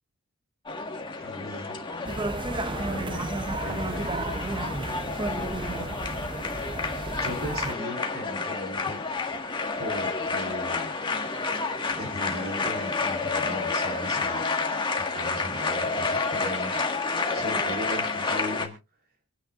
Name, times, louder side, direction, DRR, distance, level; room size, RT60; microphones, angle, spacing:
sound 1, 0.7-18.7, left 3 dB, 25° left, 1.7 m, -30 dB
voice 1, 1.2-1.8 2.7-4.2 7.1-9.0 9.8-11.0 11.9-14.4 15.0-16.8 17.3-18.7, equal, 50° right, 1 dB, 3.7 m, -37 dB
sound 2, 2.0-7.7, right 2 dB, 25° right, 0.7 m, -32 dB
26.0 x 9.8 x 2.5 m, 0.29 s
head